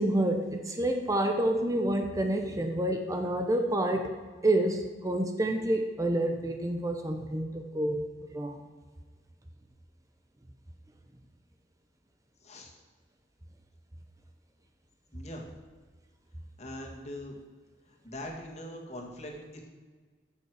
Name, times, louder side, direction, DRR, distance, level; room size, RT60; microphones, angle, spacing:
voice 1, 0.0-4.1 4.4-8.0 8.3-8.6, right 1 dB, 20° right, 5 dB, 0.8 m, -28 dB
voice 2, 12.4-12.7 15.1-15.5 16.6-17.3 18.0-19.6, left 1 dB, 40° left, 0 dB, 2.0 m, -42 dB
14.0 x 7.2 x 4.8 m, 1.5 s
head